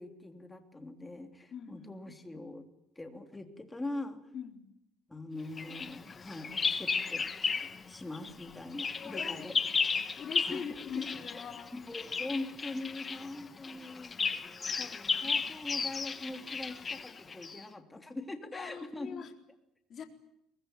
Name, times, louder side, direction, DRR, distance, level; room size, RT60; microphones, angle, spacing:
voice 1, 0.0-2.7 2.9-4.3 5.1-7.3 7.6-9.5 10.5-10.6 10.9-19.2, left 2 dB, 10° left, 6 dB, 3.1 m, -42 dB
voice 2, 1.5-1.9 4.3-4.6 9.0-9.5 10.2-11.8 15.2-15.4 18.5-19.3 19.9-20.0, left 7 dB, 40° left, 4 dB, 4.0 m, -42 dB
Bird vocalization bird call bird song, 5.6-7.8 8.1-17.6, left 5 dB, 25° left, 1.2 m, -34 dB
24.0 x 20.5 x 9.2 m, 0.80 s
cardioid pair, 125°, 0 cm